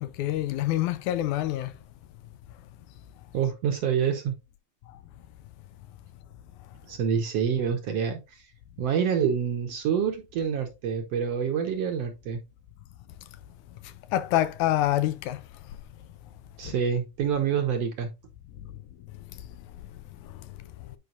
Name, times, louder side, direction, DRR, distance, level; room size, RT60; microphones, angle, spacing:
voice 1, 0.0-1.7 14.1-15.4 16.7-16.8, left 13 dB, 80° left, 1.9 m, -26 dB
voice 2, 3.3-4.3 6.9-8.2 8.8-12.4 16.6-18.1, right 7 dB, 65° right, 1.6 m, -27 dB
9.2 x 5.0 x 2.5 m
omnidirectional pair, 3.6 m